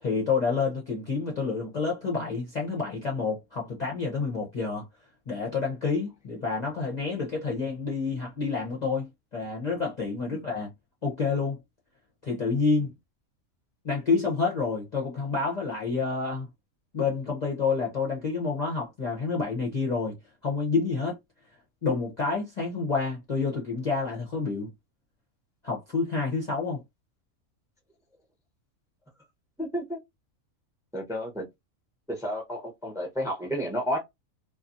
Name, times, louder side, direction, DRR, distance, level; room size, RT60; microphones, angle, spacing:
voice 1, 0.0-4.9 5.3-10.7 11.0-11.6 12.2-12.9 13.8-16.5 16.9-20.2 20.4-21.2 21.8-24.7 25.6-26.8, left 4 dB, 40° left, 0.7 m, -28 dB
voice 2, 29.6-30.0 30.9-31.5 32.1-34.0, equal, 5° right, 0.7 m, -31 dB
2.6 x 2.5 x 2.5 m
omnidirectional pair, 1.4 m